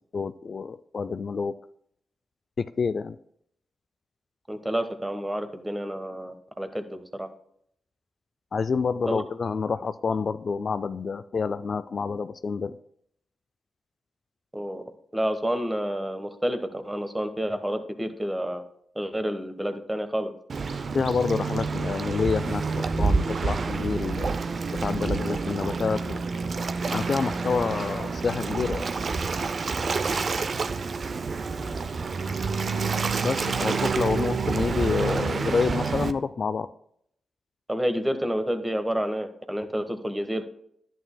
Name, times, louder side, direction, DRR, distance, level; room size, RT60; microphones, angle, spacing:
voice 1, 0.1-1.5 2.6-3.2 8.5-12.8 20.9-24.3 24.7-26.2 26.9-28.9 33.2-36.7, left 5 dB, 55° left, 12 dB, 0.3 m, -28 dB
voice 2, 4.5-7.3 9.1-9.2 14.5-14.8 15.1-18.6 18.9-20.3 37.7-40.4, equal, 15° right, 8 dB, 1.2 m, -29 dB
Waves surf, 20.5-36.1, right 4 dB, 55° right, 0.5 m, -28 dB
10.5 x 9.0 x 2.2 m, 0.70 s
supercardioid pair, 55°, 0 cm